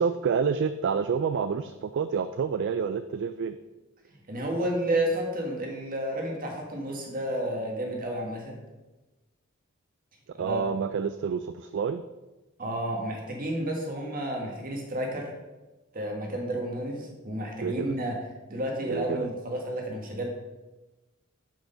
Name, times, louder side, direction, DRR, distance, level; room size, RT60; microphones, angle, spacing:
voice 1, 0.0-3.6 10.4-12.0 17.6-17.9 18.9-19.3, right 6 dB, 60° right, 11 dB, 0.3 m, -28 dB
voice 2, 4.3-8.6 10.3-10.6 12.6-15.3 15.9-18.2 18.5-20.3, right 1 dB, 45° right, 1 dB, 1.7 m, -31 dB
7.8 x 5.0 x 5.2 m, 1.1 s
head